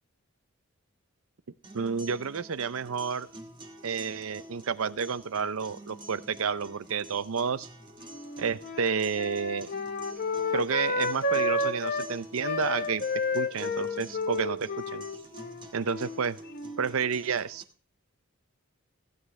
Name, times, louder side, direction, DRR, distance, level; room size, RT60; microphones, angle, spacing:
sound 1, 1.6-17.6, right 1 dB, 20° right, 1.4 m, -48 dB
voice 1, 1.7-3.3 3.8-7.7 8.4-9.7 10.5-13.0 13.3-15.0 15.7-16.4 16.8-17.6, right 6 dB, 75° right, 16 dB, 0.6 m, -30 dB
Wind instrument woodwind instrument, 8.1-12.1 12.4-16.9, left 2 dB, 45° left, 1.2 m, -31 dB
15.5 x 9.3 x 3.2 m, 0.42 s
head